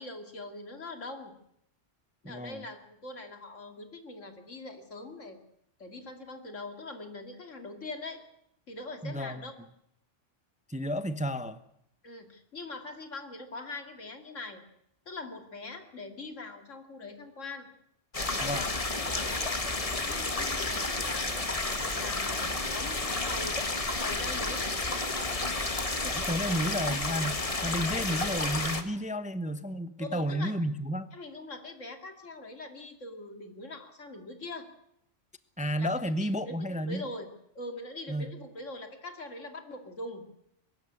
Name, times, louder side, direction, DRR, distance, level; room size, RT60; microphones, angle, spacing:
voice 1, 0.0-1.3 2.2-5.4 5.8-8.2 8.7-9.5 12.0-14.6 15.1-17.7 18.2-19.4 20.1-21.5 21.9-24.8 26.5-26.6 30.0-30.5 31.1-34.7 35.8-35.9 36.2-37.3 37.5-40.2, left 2 dB, 85° left, 6 dB, 2.9 m, -42 dB
voice 2, 2.2-2.6 9.0-9.4 10.7-11.6 18.4-18.7 26.0-31.1 35.6-37.1 38.1-38.3, equal, 5° right, 12 dB, 0.7 m, -32 dB
sound 1, 18.1-28.8, left 2 dB, 30° left, 1.6 m, -31 dB
22.5 x 13.5 x 9.7 m, 0.74 s
omnidirectional pair, 1.3 m